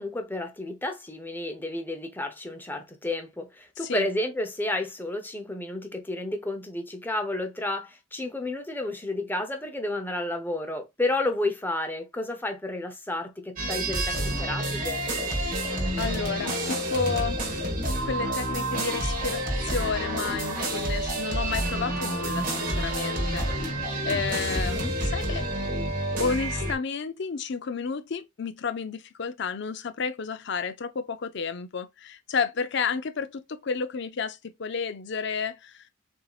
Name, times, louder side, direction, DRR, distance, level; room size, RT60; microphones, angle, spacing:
voice 1, 0.0-15.0 24.5-25.0, left 2 dB, 10° left, 0.8 m, -31 dB
sound 1, 13.6-26.7, right 1 dB, 45° right, 1.4 m, -29 dB
voice 2, 16.0-17.4 18.0-25.5 26.2-35.9, left 5 dB, 60° left, 0.5 m, -31 dB
6.8 x 2.8 x 2.4 m
head